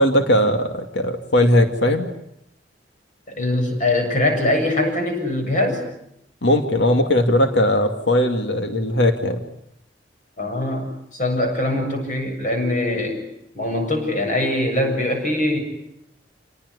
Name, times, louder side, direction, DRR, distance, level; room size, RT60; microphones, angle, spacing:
voice 1, 0.0-2.1 6.4-9.4, left 1 dB, 75° left, 6 dB, 2.4 m, -18 dB
voice 2, 3.3-5.8 10.4-13.2 13.5-15.6, left 1 dB, 45° left, 4 dB, 7.4 m, -22 dB
29.0 x 19.5 x 9.8 m, 0.77 s
head